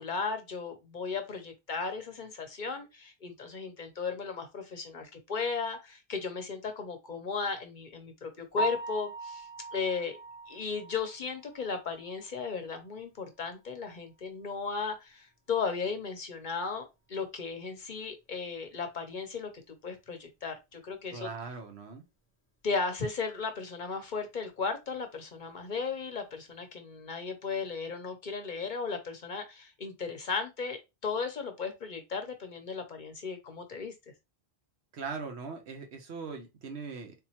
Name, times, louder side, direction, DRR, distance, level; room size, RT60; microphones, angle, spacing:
voice 1, 0.0-10.2 10.5-21.3 22.6-33.9, left 5 dB, 50° left, 0.7 m, -36 dB
Piano, 8.5-12.5 12.9-13.0 13.5-13.6 13.9-14.0 17.1-17.2 25.7-26.0, right 2 dB, 15° left, 0.6 m, -39 dB
voice 2, 21.1-22.0 34.9-37.1, right 5 dB, 75° right, 1.1 m, -40 dB
3.7 x 2.9 x 2.8 m
omnidirectional pair, 1.1 m